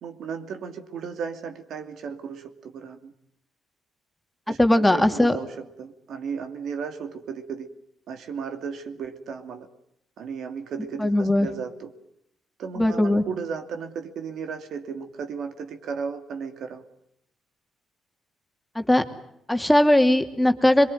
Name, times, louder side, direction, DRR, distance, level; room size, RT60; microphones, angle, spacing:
voice 1, 0.0-3.1 4.5-7.7 8.1-9.7 10.2-11.9 12.6-16.8, right 6 dB, 70° right, 7 dB, 2.7 m, -35 dB
voice 2, 4.6-5.4 11.0-11.5 12.8-13.2 18.8-19.0 19.5-20.9, left 1 dB, 5° left, 6 dB, 2.6 m, -19 dB
23.5 x 22.5 x 9.2 m, 0.75 s
cardioid pair, 90°, 0 cm